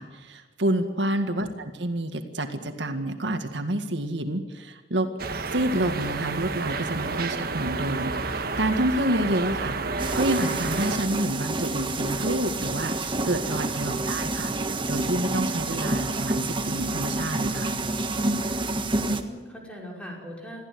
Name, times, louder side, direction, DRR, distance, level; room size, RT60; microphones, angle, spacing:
voice 1, 0.0-5.1 5.5-14.5 14.9-17.7, right 1 dB, 80° right, 6 dB, 2.0 m, -28 dB
sound 1, 5.2-11.0, right 3 dB, 60° right, 1.5 m, -30 dB
sound 2, 10.0-19.2, right 2 dB, 30° right, 1.6 m, -28 dB
voice 2, 18.9-20.6, equal, 5° left, -1 dB, 5.7 m, -40 dB
22.5 x 15.0 x 9.5 m, 1.3 s
head